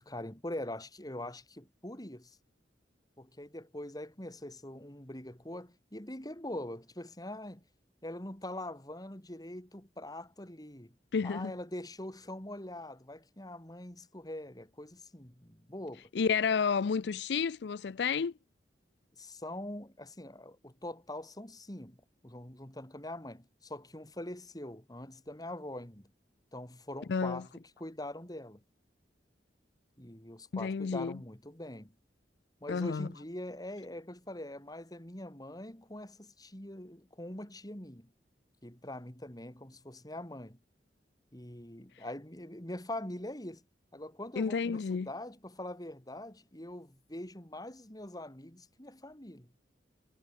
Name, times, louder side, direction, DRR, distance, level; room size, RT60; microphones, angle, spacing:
voice 1, 0.0-2.4 3.2-7.6 8.0-10.9 11.2-16.1 19.2-22.0 22.2-26.1 26.5-28.6 30.0-31.9 32.6-38.1 38.6-40.6 41.3-43.6 43.9-49.5, left 1 dB, 20° left, 3.8 m, -43 dB
voice 2, 11.1-11.5 16.1-18.3 27.1-27.4 30.5-31.2 32.7-33.1 42.0-42.1 44.4-45.1, left 5 dB, 70° left, 0.4 m, -31 dB
head